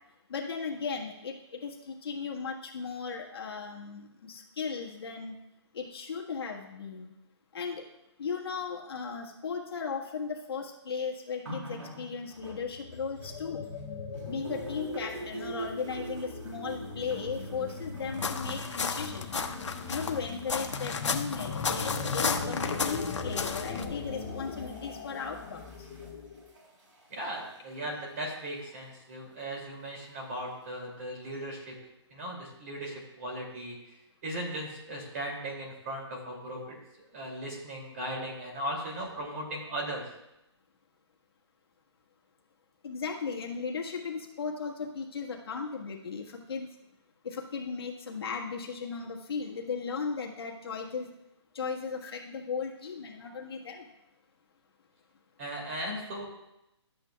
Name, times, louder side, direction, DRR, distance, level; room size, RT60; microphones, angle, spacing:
voice 1, 0.3-1.4 1.6-5.4 5.7-7.1 7.5-7.8 8.2-13.6 14.3-19.3 19.9-25.9 42.8-46.7 47.2-51.1 51.5-53.9, left 5 dB, 55° left, -1 dB, 1.5 m, -36 dB
sound 1, 11.5-13.8 14.1-28.9 29.8-29.9, right 2 dB, 90° right, 2.1 m, -46 dB
sound 2, 12.4-26.5, left 5 dB, 10° left, 0.4 m, -40 dB
sound 3, 18.1-23.8, left 5 dB, 90° left, 0.9 m, -33 dB
voice 2, 27.1-31.7 32.1-34.0 34.2-36.8 37.1-40.1 55.4-56.2, right 1 dB, 30° right, -2 dB, 2.5 m, -37 dB
12.5 x 8.7 x 2.3 m, 0.88 s
hypercardioid pair, 170°, 15 cm